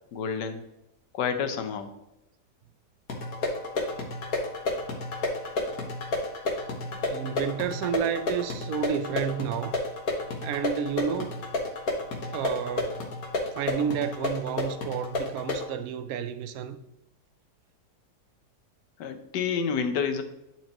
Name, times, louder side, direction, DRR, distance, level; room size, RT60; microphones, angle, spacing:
voice 1, 0.1-0.6 1.1-1.9 19.0-20.2, left 6 dB, 90° left, 1.5 m, -29 dB
sound 1, 3.1-15.7, left 2 dB, 60° left, 1.8 m, -31 dB
voice 2, 6.8-9.8 10.4-11.3 12.3-13.1 13.5-16.8, right 8 dB, 70° right, 1.0 m, -31 dB
10.5 x 4.5 x 2.9 m
omnidirectional pair, 1.8 m